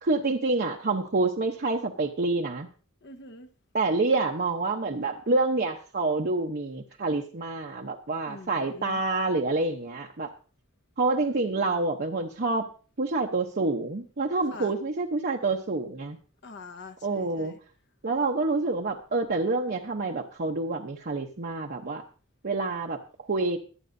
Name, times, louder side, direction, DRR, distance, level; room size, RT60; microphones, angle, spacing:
voice 1, 0.0-2.7 3.7-10.3 11.0-12.7 13.0-16.2 17.0-17.5 18.0-22.0 22.4-23.0 23.3-23.6, right 3 dB, 45° right, 0.8 m, -27 dB
voice 2, 3.0-3.5 8.2-9.0 14.5-14.7 16.4-17.6, left 3 dB, 55° left, 1.1 m, -44 dB
22.5 x 9.0 x 2.7 m
head